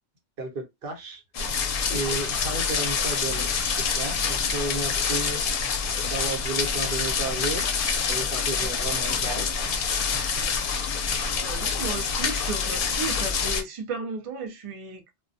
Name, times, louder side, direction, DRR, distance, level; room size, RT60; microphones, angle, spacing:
voice 1, 0.4-1.2 1.9-5.4 6.0-7.7 8.1-9.5, right 2 dB, 60° right, 1.0 m, -33 dB
sound 1, 1.3-13.6, left 5 dB, 60° left, 0.7 m, -26 dB
voice 2, 11.1-15.0, right 4 dB, 45° right, 0.4 m, -34 dB
2.2 x 2.2 x 2.5 m
omnidirectional pair, 1.1 m